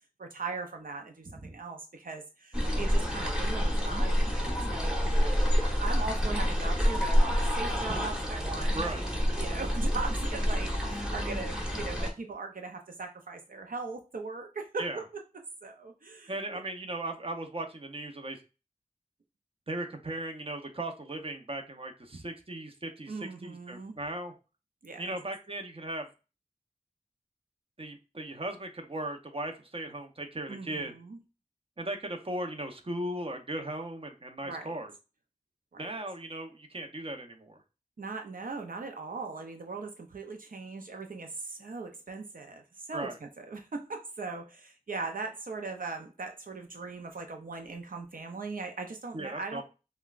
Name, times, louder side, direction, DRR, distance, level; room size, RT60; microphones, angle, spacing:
voice 1, 0.2-9.1 9.3-15.0 15.6-16.6 23.1-23.9 24.8-25.2 30.5-31.2 34.4-34.8 35.7-35.9 38.0-49.6, right 4 dB, 90° right, 4 dB, 0.5 m, -39 dB
sound 1, 2.5-12.1, equal, 5° right, 1.1 m, -28 dB
voice 2, 16.3-18.4 19.7-24.3 25.0-26.1 27.8-30.9 31.8-34.9 35.8-37.6 42.9-43.2 49.1-49.6, right 1 dB, 40° right, 4 dB, 0.7 m, -37 dB
5.5 x 2.2 x 2.4 m, 0.31 s
wide cardioid pair, 50°, 14 cm